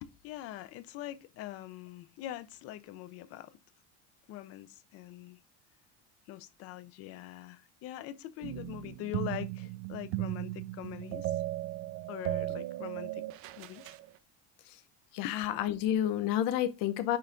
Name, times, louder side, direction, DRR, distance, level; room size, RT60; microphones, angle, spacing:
voice 1, 0.0-3.6 4.3-5.4 6.3-11.4 12.1-13.2 13.6-13.9 15.2-15.3, left 14 dB, 45° left, 0.6 m, -43 dB
sound 1, 8.4-14.0, right 16 dB, 45° right, 0.4 m, -37 dB
voice 2, 15.1-17.2, left 11 dB, 75° left, 0.9 m, -30 dB
10.0 x 3.5 x 3.8 m
cardioid pair, 175°, 34 cm